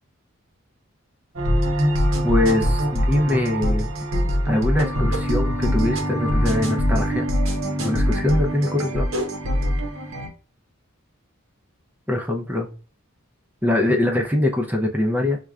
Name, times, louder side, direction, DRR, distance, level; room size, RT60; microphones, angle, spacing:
sound 1, 1.4-10.3, equal, 65° right, 0.8 m, -22 dB
voice 1, 2.2-3.9 4.5-7.3 7.8-9.1 12.1-12.7 13.6-15.4, left 1 dB, 10° right, 2 dB, 0.5 m, -22 dB
6.1 x 2.2 x 2.3 m, 0.36 s
head